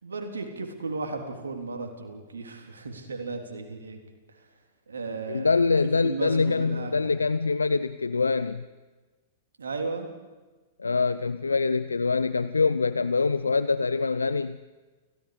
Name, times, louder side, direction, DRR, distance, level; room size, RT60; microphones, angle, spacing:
voice 1, 0.0-4.0 4.3-4.4 4.9-5.7 6.0-7.1 9.6-10.1, right 3 dB, 85° right, 4 dB, 3.7 m, -35 dB
voice 2, 5.3-8.7 10.8-14.6, left 4 dB, 90° left, 14 dB, 0.6 m, -24 dB
30.0 x 17.5 x 5.2 m, 1.3 s
hypercardioid pair, 105°, 0 cm